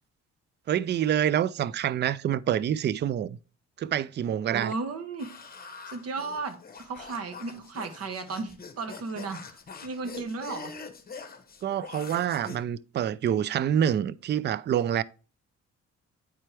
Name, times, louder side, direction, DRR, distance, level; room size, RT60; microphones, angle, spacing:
voice 1, 0.7-3.4 3.8-4.7 11.6-15.0, right 10 dB, 35° right, 0.4 m, -27 dB
voice 2, 4.5-5.3 5.9-10.7, right 4 dB, 55° right, 1.3 m, -35 dB
sound 1, 5.2-12.6, left 5 dB, 30° left, 1.1 m, -44 dB
9.7 x 4.4 x 3.3 m
cardioid pair, 90°, 30 cm